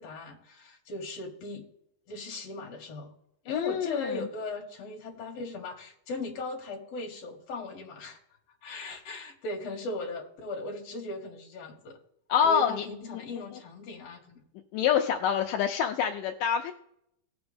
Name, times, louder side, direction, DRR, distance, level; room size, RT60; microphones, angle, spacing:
voice 1, 0.0-1.7 2.1-3.1 3.4-8.2 8.6-12.0 12.4-14.4, left 2 dB, 55° left, 1 dB, 2.8 m, -38 dB
voice 2, 3.5-4.2 12.3-12.9 14.7-16.7, left 8 dB, 80° left, 4 dB, 2.2 m, -26 dB
18.0 x 6.1 x 3.5 m, 0.76 s
omnidirectional pair, 3.8 m